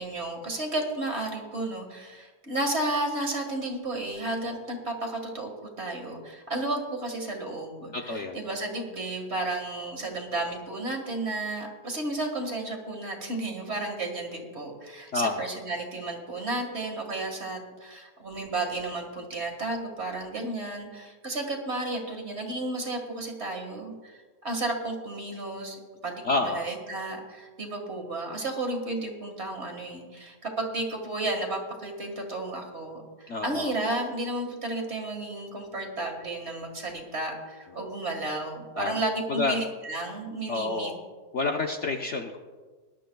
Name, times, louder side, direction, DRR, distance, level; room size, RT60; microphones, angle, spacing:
voice 1, 0.0-5.5 5.8-24.2 24.4-40.9, right 2 dB, 40° right, 2 dB, 1.9 m, -33 dB
voice 2, 7.9-8.4 15.1-15.5 26.2-26.7 33.3-33.7 38.8-38.9 39.3-39.6 40.5-41.0 41.3-42.4, left 3 dB, 55° left, 2 dB, 0.9 m, -28 dB
20.5 x 11.5 x 2.3 m, 1.4 s
omnidirectional pair, 1.8 m